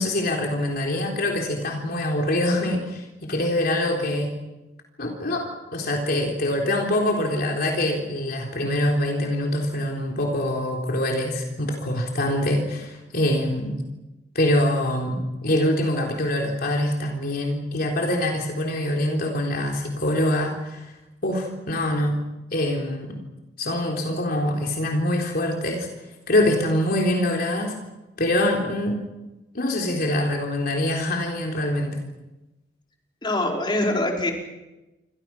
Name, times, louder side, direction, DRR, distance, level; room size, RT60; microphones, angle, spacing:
voice 1, 0.0-4.3 5.0-13.8 14.4-20.8 21.2-22.2 22.5-23.2 23.6-25.9 26.3-27.7 28.2-29.0 29.5-32.0, left 1 dB, 55° left, 1 dB, 3.8 m, -24 dB
voice 2, 33.2-34.3, left 1 dB, 25° left, 0 dB, 5.2 m, -23 dB
29.0 x 25.0 x 6.1 m, 1.0 s
head